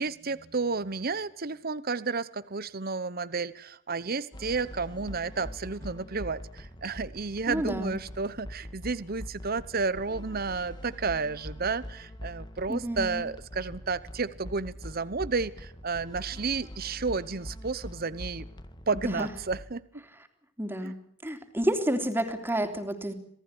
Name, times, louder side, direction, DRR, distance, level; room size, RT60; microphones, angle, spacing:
voice 1, 0.0-18.5 18.9-20.0 20.8-20.9, right 4 dB, 50° right, 16 dB, 1.0 m, -32 dB
sound 1, 4.3-19.7, left 1 dB, 20° left, 1.9 m, -43 dB
voice 2, 7.5-8.0 12.7-13.2 19.1-19.3 20.6-20.9 21.2-23.1, right 1 dB, 10° right, 7 dB, 3.3 m, -30 dB
27.5 x 18.5 x 9.9 m, 0.66 s
head